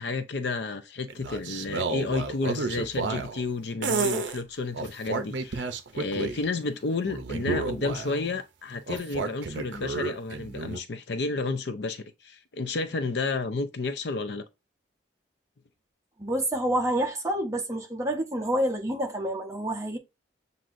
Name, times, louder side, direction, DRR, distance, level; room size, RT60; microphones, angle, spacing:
voice 1, 0.0-14.4, left 3 dB, 60° left, 0.5 m, -31 dB
sound 1, 1.1-3.4 3.8-4.4 4.7-6.4 7.0-8.3 8.9-10.8, right 4 dB, 70° right, 0.6 m, -31 dB
voice 2, 16.2-20.0, right 1 dB, 15° right, 0.9 m, -28 dB
7.5 x 2.7 x 2.6 m
head